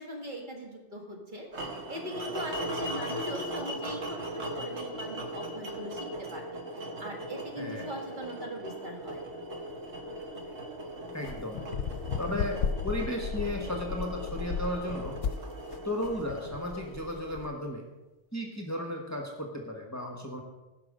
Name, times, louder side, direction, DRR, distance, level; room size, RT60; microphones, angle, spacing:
voice 1, 0.0-1.5 1.9-9.2, equal, 40° right, 0 dB, 2.0 m, -40 dB
sound 1, 1.5-17.6, right 1 dB, 75° right, 1.6 m, -39 dB
voice 2, 7.6-7.9 11.1-11.6 12.2-12.6 12.8-15.2 15.8-17.8 18.3-20.4, left 1 dB, 15° left, 1 dB, 1.4 m, -34 dB
sound 2, 9.1-17.5, left 6 dB, 75° left, 0.9 m, -36 dB
16.5 x 5.8 x 5.1 m, 1.1 s
omnidirectional pair, 1.2 m